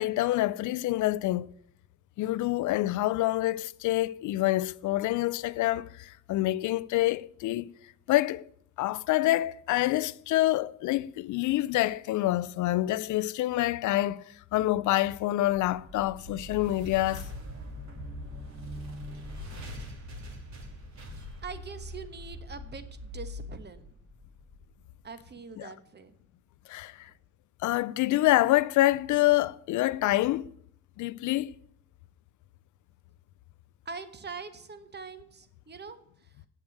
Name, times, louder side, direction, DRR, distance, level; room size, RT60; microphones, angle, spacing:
voice 1, 0.0-1.5 2.2-7.7 8.1-8.4 8.8-14.2 14.5-17.2 25.6-25.7 26.7-27.1 27.6-30.5 31.0-31.5, left 16 dB, 75° left, 0.5 m, -26 dB
sound 1, 15.5-24.6, left 1 dB, 65° right, 2.7 m, -42 dB
voice 2, 21.4-23.9 25.0-26.1 33.8-36.0, right 5 dB, 35° right, 1.1 m, -43 dB
7.8 x 7.1 x 7.8 m
cardioid pair, 90°, 30 cm